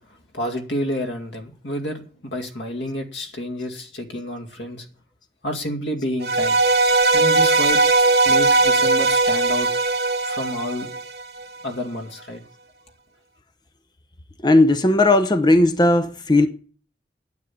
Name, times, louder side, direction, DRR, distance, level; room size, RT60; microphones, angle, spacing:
voice 1, 0.3-4.9 5.4-6.6 7.1-9.7 10.3-10.9 11.6-12.4, equal, 85° left, 2.4 m, -29 dB
sound 1, 6.2-11.4, right 3 dB, 65° right, 1.4 m, -19 dB
voice 2, 14.4-16.5, left 2 dB, 25° left, 0.7 m, -16 dB
9.6 x 9.0 x 8.6 m
head